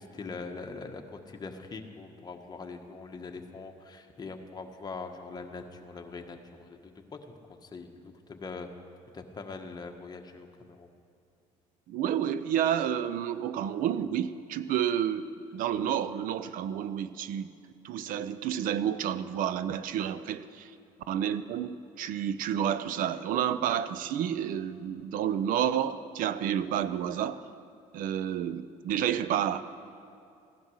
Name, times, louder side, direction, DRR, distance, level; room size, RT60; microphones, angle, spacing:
voice 1, 0.0-8.7 9.1-10.9, left 4 dB, 25° left, 4 dB, 1.4 m, -42 dB
voice 2, 11.9-17.5 17.8-20.7 21.1-27.4 27.9-29.6, right 9 dB, 70° right, 14 dB, 0.6 m, -30 dB
16.5 x 11.0 x 6.4 m, 2.5 s
cardioid pair, 95°, 15 cm